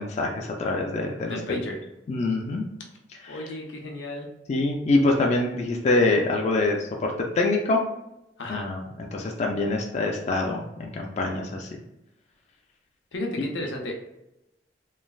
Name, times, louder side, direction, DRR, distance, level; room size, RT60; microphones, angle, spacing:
voice 1, 0.0-1.6 2.1-2.7 3.2-3.4 4.5-7.8 8.5-11.7 13.4-13.5, left 2 dB, 40° left, 1 dB, 0.3 m, -25 dB
voice 2, 1.3-1.8 3.3-4.3 8.4-8.7 13.1-14.0, left 1 dB, 75° left, 1 dB, 0.6 m, -33 dB
3.1 x 2.3 x 2.3 m, 0.89 s
head